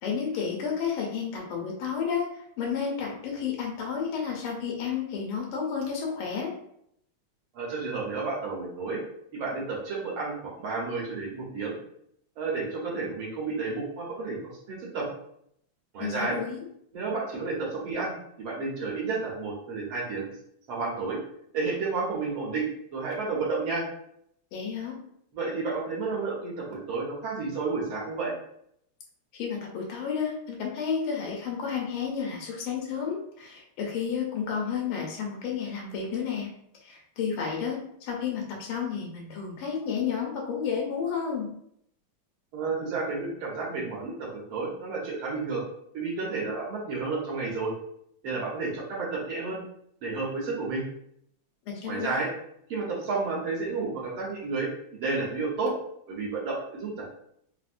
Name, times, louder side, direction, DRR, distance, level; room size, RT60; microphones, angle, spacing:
voice 1, 0.0-6.5 16.0-16.6 24.5-25.0 29.3-36.5 36.8-41.5 51.7-52.1, left 6 dB, 90° left, 0 dB, 1.7 m, -31 dB
voice 2, 7.5-9.0 9.3-11.7 12.4-14.4 14.7-15.1 15.9-16.4 16.9-18.1 18.4-20.3 20.7-21.2 21.5-22.7 22.9-23.8 25.3-28.3 42.5-45.6 45.9-47.7 48.2-49.6 50.0-50.8 51.9-52.3 52.7-55.7 56.1-57.1, right 3 dB, 75° right, -3 dB, 1.8 m, -31 dB
4.4 x 2.1 x 2.5 m, 0.71 s
omnidirectional pair, 2.3 m